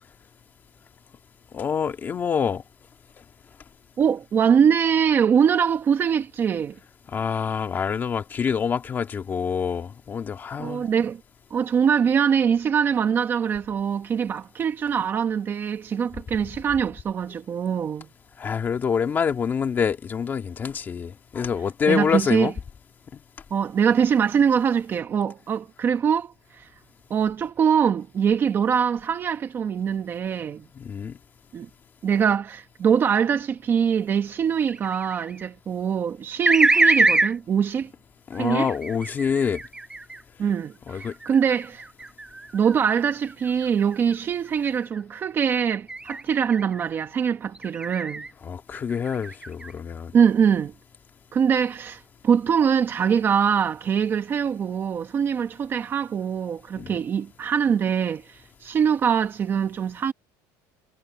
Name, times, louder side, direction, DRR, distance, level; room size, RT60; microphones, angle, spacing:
voice 1, 1.5-2.6 7.1-10.9 18.4-22.5 30.7-31.2 38.3-39.6 40.9-41.1 48.4-50.1 56.8-57.0, left 6 dB, 20° left, 2.2 m, -26 dB
voice 2, 4.0-6.8 10.6-11.2 11.5-18.1 21.9-22.5 23.5-26.7 27.1-30.6 31.5-31.7 32.0-37.9 38.4-38.7 40.4-41.8 42.5-48.2 50.1-50.7 51.3-60.1, right 7 dB, 25° right, 1.0 m, -23 dB
sound 1, 34.7-35.4 36.5-37.3 38.3-40.2 40.9-44.2 44.6-45.0 45.9-46.8 47.6-48.3 48.8-49.7, right 2 dB, 10° right, 4.9 m, -25 dB
cardioid pair, 175°, 9 cm